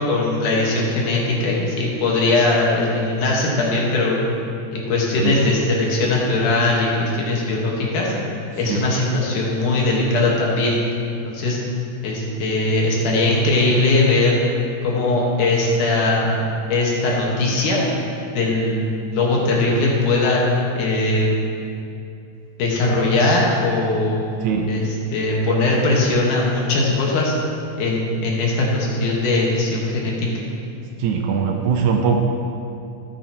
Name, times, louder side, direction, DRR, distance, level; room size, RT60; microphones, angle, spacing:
voice 1, 0.0-4.2 4.7-8.1 8.6-10.8 11.3-11.6 12.0-14.4 14.8-16.4 16.7-17.8 18.3-20.4 20.8-21.3 22.6-24.2 24.7-24.8 25.1-27.3 27.8-30.4, left 2 dB, 75° left, -3 dB, 2.9 m, -20 dB
voice 2, 24.4-24.7 31.0-32.1, right 6 dB, 75° right, 3 dB, 1.9 m, -21 dB
13.5 x 9.2 x 2.9 m, 2.5 s
omnidirectional pair, 3.7 m